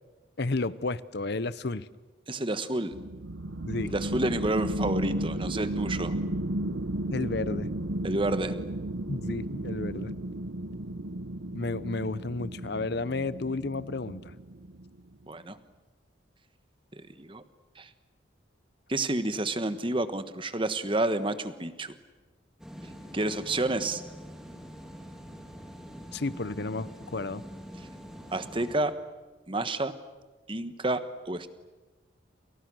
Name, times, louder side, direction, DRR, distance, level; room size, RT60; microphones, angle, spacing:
voice 1, 0.4-1.9 3.6-3.9 7.1-7.7 9.1-10.2 11.5-14.3 26.1-27.4, left 3 dB, 55° left, 17 dB, 0.8 m, -32 dB
voice 2, 2.3-2.9 3.9-6.1 8.0-8.5 15.3-15.6 17.0-17.4 17.8-17.9 18.9-21.9 23.1-24.0 28.3-28.9 29.5-29.9 30.5-31.5, right 2 dB, 25° right, 11 dB, 1.3 m, -29 dB
sound 1, 2.9-15.0, right 1 dB, 65° right, 0.8 m, -34 dB
sound 2, 22.6-28.8, equal, 5° right, 3.2 m, -45 dB
29.5 x 28.0 x 6.3 m, 1.2 s
head